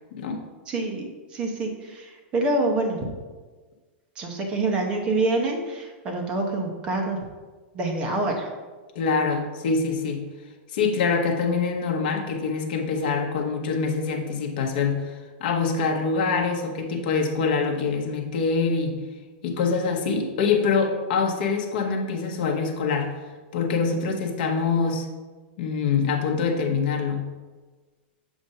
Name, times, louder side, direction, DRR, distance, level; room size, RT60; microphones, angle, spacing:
voice 1, 0.1-0.4 8.9-10.2 10.7-19.0 19.4-23.1 23.5-25.1 25.6-27.2, left 5 dB, 55° left, 2 dB, 0.9 m, -25 dB
voice 2, 0.7-3.0 4.2-7.2 7.7-8.5, right 2 dB, 15° right, 1 dB, 0.7 m, -26 dB
7.0 x 2.5 x 5.3 m, 1.3 s
supercardioid pair, 175°, 6 cm